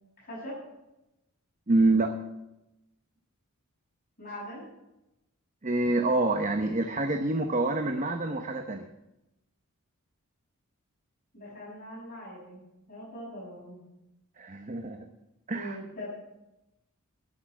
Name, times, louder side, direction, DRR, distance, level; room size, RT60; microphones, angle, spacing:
voice 1, 0.2-0.6 4.2-4.6 11.3-12.6 12.9-13.8 15.5-16.1, equal, 40° left, -9 dB, 6.3 m, -41 dB
voice 2, 1.7-2.2 5.6-8.9 14.4-15.1 15.5-15.8, right 2 dB, 35° right, 6 dB, 0.8 m, -26 dB
10.0 x 8.7 x 9.5 m, 0.93 s
head